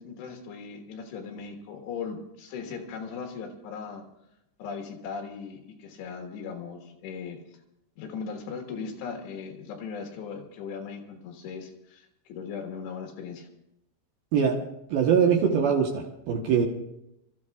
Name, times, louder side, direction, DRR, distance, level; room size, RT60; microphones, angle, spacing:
voice 1, 0.0-4.0 4.6-7.4 8.0-13.5, left 5 dB, 75° left, 2 dB, 3.6 m, -38 dB
voice 2, 14.9-16.7, right 7 dB, 70° right, 1 dB, 2.5 m, -22 dB
29.5 x 14.0 x 2.4 m, 0.85 s
omnidirectional pair, 5.2 m